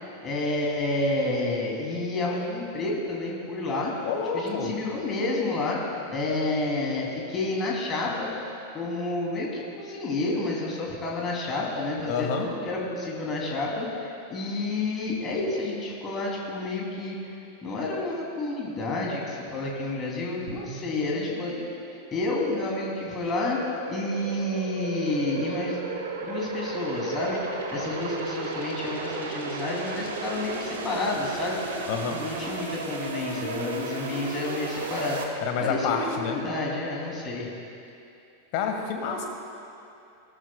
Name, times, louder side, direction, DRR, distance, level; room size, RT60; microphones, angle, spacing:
voice 1, 0.2-3.9 4.3-8.3 8.7-23.6 23.9-25.8 26.2-31.6 32.2-35.2 35.6-37.5, left 2 dB, 25° left, -2 dB, 2.8 m, -30 dB
voice 2, 4.0-4.7 12.1-12.5 31.9-32.2 35.4-36.4 38.5-39.3, left 5 dB, 45° left, 3 dB, 1.6 m, -28 dB
sound 1, 20.5-35.2, right 4 dB, 60° right, 1.2 m, -35 dB
19.5 x 12.0 x 2.3 m, 2.7 s
figure-of-eight pair, 90°, 0 cm